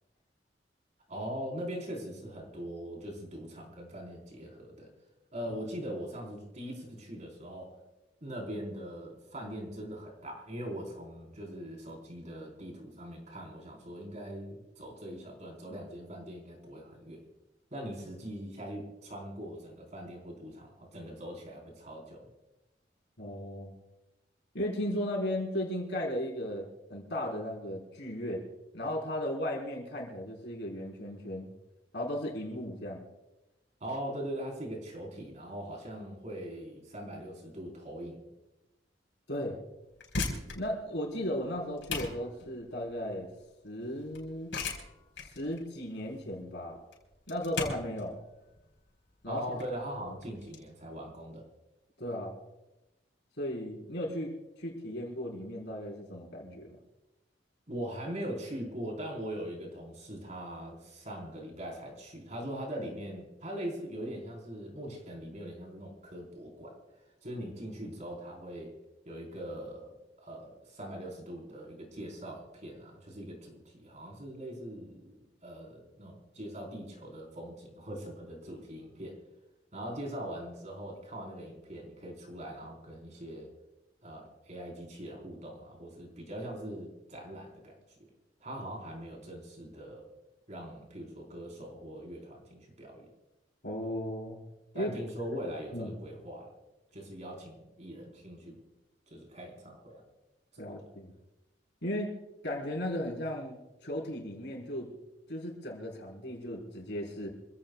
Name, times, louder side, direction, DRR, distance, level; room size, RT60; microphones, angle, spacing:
voice 1, 1.1-4.9 5.3-7.7 8.2-17.2 17.7-22.3 33.8-38.2 49.3-51.5 57.7-66.8 67.2-68.7 69.0-79.2 79.7-83.5 84.0-87.8 88.4-90.1 90.5-93.1 94.7-96.5 96.9-98.6 99.1-100.0 100.5-100.8, equal, 40° right, 0 dB, 4.5 m, -41 dB
voice 2, 23.2-23.7 24.5-28.5 28.7-31.5 31.9-33.0 39.3-39.6 40.5-43.3 43.6-44.5 45.2-46.8 47.3-48.2 49.2-49.4 52.0-52.4 53.4-54.3 54.6-56.8 93.6-94.4 94.7-94.9 95.3-95.4 95.7-95.9 100.6-101.1 101.8-102.2 102.4-104.9 105.3-107.3, left 1 dB, 70° left, -1 dB, 4.4 m, -36 dB
sound 1, 39.8-50.6, left 3 dB, 90° left, 4.3 m, -40 dB
27.0 x 16.0 x 2.4 m, 0.97 s
head